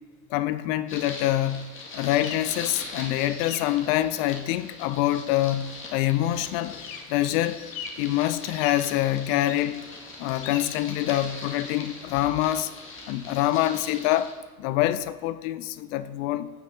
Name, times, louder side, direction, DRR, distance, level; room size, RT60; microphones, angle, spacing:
voice 1, 0.3-6.8 7.1-7.6 8.0-9.8 10.2-12.7 13.1-16.5, left 14 dB, 45° left, 0.4 m, -25 dB
sound 1, 0.9-14.3, left 3 dB, 25° left, 1.9 m, -41 dB
sound 2, 1.5-14.5, left 7 dB, 60° left, 1.1 m, -45 dB
15.5 x 7.3 x 2.7 m
hypercardioid pair, 90°, 45 cm